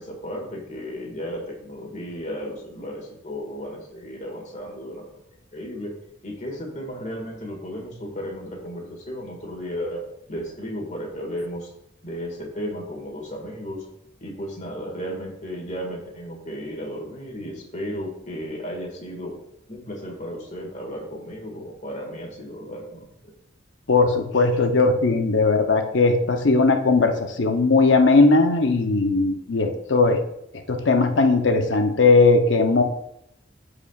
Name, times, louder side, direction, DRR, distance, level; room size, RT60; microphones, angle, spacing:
voice 1, 0.0-5.1 5.5-5.9 6.2-10.0 10.3-11.7 12.0-13.8 14.2-19.3 19.7-23.1, equal, 40° left, -1 dB, 1.9 m, -34 dB
voice 2, 23.9-30.2 30.7-32.8, left 3 dB, 70° left, 5 dB, 0.8 m, -18 dB
13.5 x 4.8 x 2.4 m, 0.78 s
head